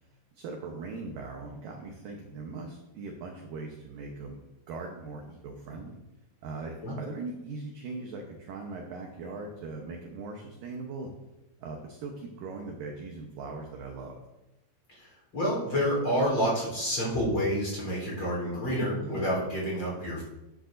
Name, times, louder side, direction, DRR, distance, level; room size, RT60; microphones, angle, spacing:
voice 1, 0.3-4.4 4.7-6.0 6.4-11.1 11.6-14.2, right 3 dB, 75° right, 1 dB, 2.1 m, -40 dB
voice 2, 14.9-20.2, equal, 30° left, -4 dB, 4.0 m, -29 dB
11.0 x 10.0 x 2.6 m, 0.95 s
omnidirectional pair, 5.1 m